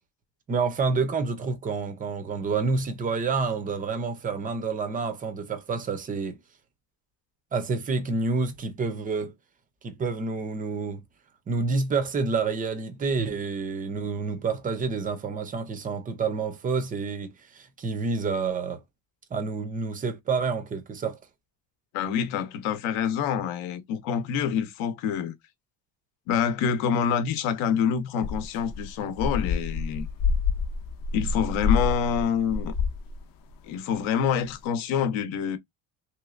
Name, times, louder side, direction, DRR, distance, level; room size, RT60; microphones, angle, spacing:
voice 1, 0.5-6.4 7.5-9.3 9.8-11.0 11.5-18.8 19.3-21.2, right 4 dB, 20° right, 0.3 m, -28 dB
voice 2, 21.9-25.3 26.3-30.1 31.1-32.7 33.6-35.6, left 7 dB, 80° left, 0.8 m, -26 dB
sound 1, 28.2-33.2 33.5-33.6 34.5-34.6, left 5 dB, 45° left, 0.6 m, -27 dB
3.3 x 3.0 x 2.4 m
cardioid pair, 160°, 47 cm